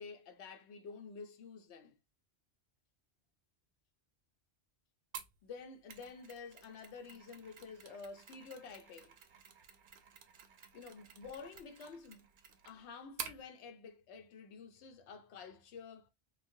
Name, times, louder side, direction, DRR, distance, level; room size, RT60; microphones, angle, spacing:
voice 1, 0.0-2.0 5.4-9.1 10.7-12.3 12.6-16.1, left 5 dB, 90° left, 0.9 m, -50 dB
Mechanisms, 5.1-13.4, right 7 dB, 60° right, 0.6 m, -51 dB
3.1 x 2.0 x 2.6 m
omnidirectional pair, 1.1 m